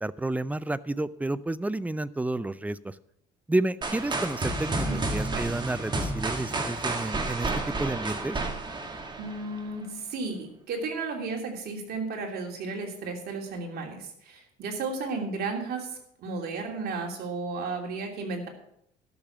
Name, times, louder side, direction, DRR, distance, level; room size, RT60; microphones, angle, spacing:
voice 1, 0.0-3.0 3.5-8.4, right 2 dB, 10° right, 17 dB, 0.4 m, -30 dB
sound 1, 3.8-9.7, right 2 dB, 25° right, 1.8 m, -31 dB
voice 2, 9.2-18.5, right 3 dB, 65° right, 2 dB, 3.0 m, -34 dB
12.5 x 6.7 x 7.1 m, 0.75 s
cardioid pair, 110°, 17 cm